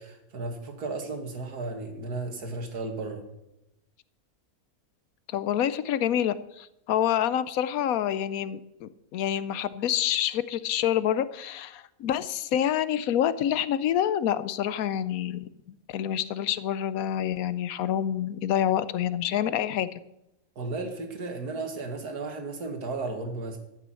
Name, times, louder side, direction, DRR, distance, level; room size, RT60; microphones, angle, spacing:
voice 1, 0.0-3.2 20.6-23.6, right 3 dB, 80° right, 4 dB, 2.3 m, -34 dB
voice 2, 5.3-20.0, left 10 dB, 70° left, 14 dB, 1.1 m, -27 dB
12.5 x 7.0 x 7.6 m, 0.88 s
omnidirectional pair, 1.6 m